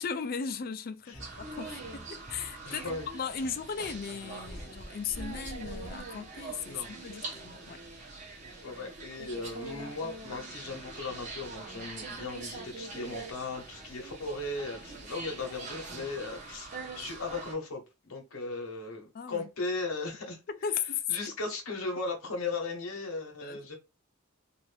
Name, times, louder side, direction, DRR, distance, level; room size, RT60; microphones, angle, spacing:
voice 1, 0.0-2.8 3.1-7.8 19.1-19.5 20.5-21.0 23.4-23.6, left 6 dB, 45° left, 0.4 m, -37 dB
sound 1, 1.1-6.7, equal, 10° right, 0.7 m, -47 dB
sound 2, 1.2-17.5, right 3 dB, 35° right, 0.9 m, -43 dB
voice 2, 2.6-3.0 6.7-6.9 8.6-16.7 16.9-20.4 21.1-23.8, left 3 dB, 85° left, 0.8 m, -37 dB
2.6 x 2.5 x 3.2 m
head